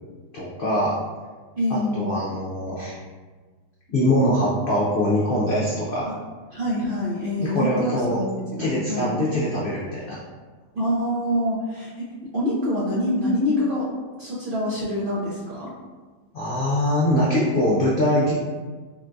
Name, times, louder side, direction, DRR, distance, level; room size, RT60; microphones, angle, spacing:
voice 1, 0.3-0.9 1.7-2.9 3.9-6.1 7.4-8.2 8.6-10.2 16.3-18.3, left 1 dB, 70° left, -6 dB, 0.5 m, -23 dB
voice 2, 1.6-2.2 6.1-6.2 6.5-9.2 10.7-11.9 12.3-13.9 14.2-15.7, left 1 dB, 55° right, -8 dB, 0.6 m, -25 dB
3.7 x 2.2 x 2.5 m, 1.4 s
omnidirectional pair, 1.5 m